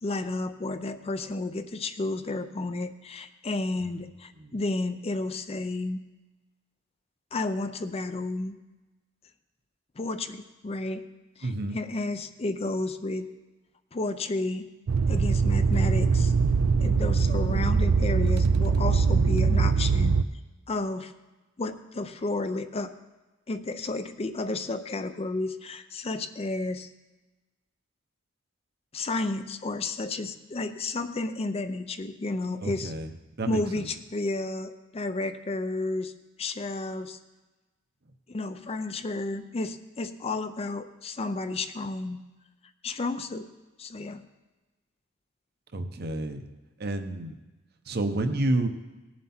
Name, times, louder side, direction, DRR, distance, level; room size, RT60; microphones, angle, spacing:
voice 1, 0.0-6.0 7.3-8.6 10.0-11.1 11.4-13.3 13.9-14.7 15.1-16.3 16.8-20.2 20.7-21.1 21.6-22.9 23.5-26.9 28.9-32.9 33.4-36.1 36.4-37.2 38.3-42.2 42.8-43.5 43.8-44.2, left 2 dB, 30° left, 10 dB, 0.5 m, -32 dB
voice 2, 11.4-11.8 32.6-33.1 33.4-33.9 45.7-46.4 46.8-47.4 47.9-48.7, right 2 dB, 50° right, 7 dB, 0.8 m, -29 dB
sound 1, 14.9-20.2, right 5 dB, 85° right, 0.4 m, -22 dB
18.5 x 7.3 x 4.3 m, 1.1 s
head